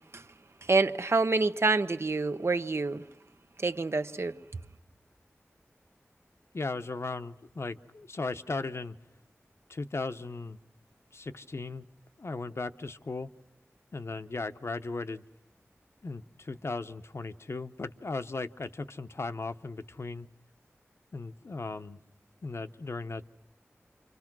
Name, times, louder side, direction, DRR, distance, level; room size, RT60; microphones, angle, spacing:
voice 1, 0.6-3.0 3.6-4.4, right 3 dB, 60° right, 0.9 m, -27 dB
voice 2, 6.5-9.0 9.7-10.6 11.1-11.9 12.2-13.3 13.9-15.2 16.0-20.3 21.1-22.0 22.4-23.2, left 3 dB, 65° left, 0.9 m, -37 dB
28.5 x 25.5 x 6.1 m
wide cardioid pair, 70°, 5 cm